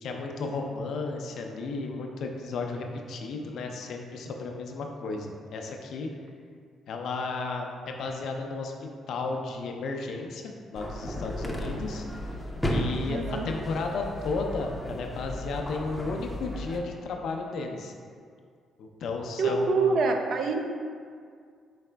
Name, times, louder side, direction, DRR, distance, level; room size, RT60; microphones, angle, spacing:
voice 1, 0.0-6.1 6.9-8.7 9.1-12.0 12.7-17.9 18.8-20.0, left 3 dB, 70° left, 2 dB, 0.4 m, -33 dB
sound 1, 10.8-16.8, equal, 10° left, 0.5 m, -34 dB
voice 2, 13.1-13.5 19.4-20.6, right 4 dB, 65° right, 4 dB, 0.4 m, -25 dB
4.7 x 4.1 x 2.2 m, 2.1 s
cardioid pair, 90°, 0 cm